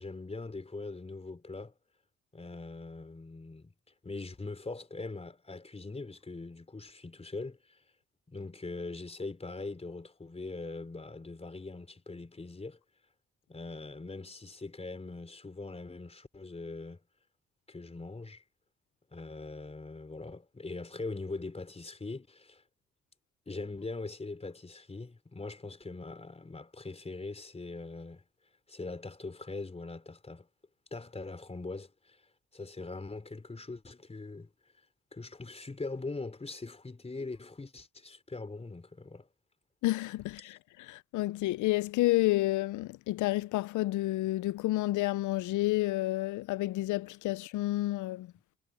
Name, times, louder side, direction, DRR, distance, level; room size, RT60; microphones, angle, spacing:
voice 1, 0.0-1.7 2.3-3.7 4.0-7.8 8.3-12.8 13.5-17.0 17.7-18.4 19.1-22.6 23.5-28.2 28.7-30.5 30.9-32.2 32.5-34.5 35.1-39.3, left 3 dB, 20° left, 3.8 m, -42 dB
voice 2, 39.8-48.3, left 17 dB, 75° left, 0.5 m, -30 dB
cardioid pair, 90°, 30 cm